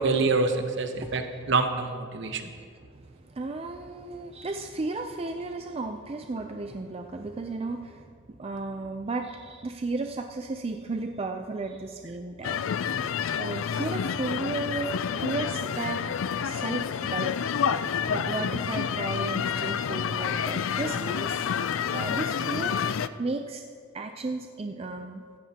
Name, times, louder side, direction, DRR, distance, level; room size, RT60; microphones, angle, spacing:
voice 1, 0.0-2.4 18.1-18.2, right 3 dB, 60° right, 6 dB, 1.0 m, -26 dB
voice 2, 0.9-1.5 2.3-8.1 8.4-12.6 13.4-16.0 16.4-17.3 18.1-21.5 21.9-23.6 23.9-25.2, right 3 dB, 30° right, 5 dB, 0.4 m, -34 dB
sound 1, 12.4-23.1, left 7 dB, 70° left, 0.4 m, -29 dB
16.5 x 14.0 x 2.9 m, 2.1 s
head